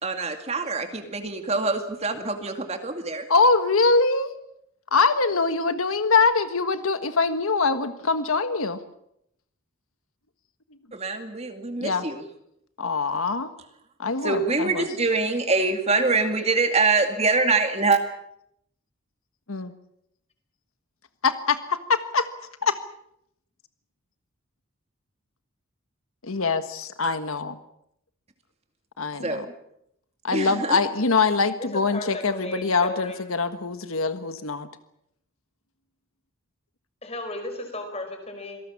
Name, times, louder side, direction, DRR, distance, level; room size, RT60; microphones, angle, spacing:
voice 1, 0.0-3.3 10.9-12.2 14.2-18.0 29.2-29.4 30.3-30.8, right 3 dB, 30° right, 6 dB, 2.3 m, -24 dB
voice 2, 3.3-4.3 4.9-8.8 11.8-12.0 12.8-13.5 14.0-14.8 19.5-19.7 21.2-22.3 22.6-22.7 26.2-27.6 29.0-29.4 30.2-34.7, left 4 dB, 85° left, 10 dB, 1.5 m, -23 dB
voice 3, 31.7-33.2 37.0-38.6, left 2 dB, 30° left, 5 dB, 5.1 m, -35 dB
26.5 x 18.5 x 7.2 m, 0.75 s
head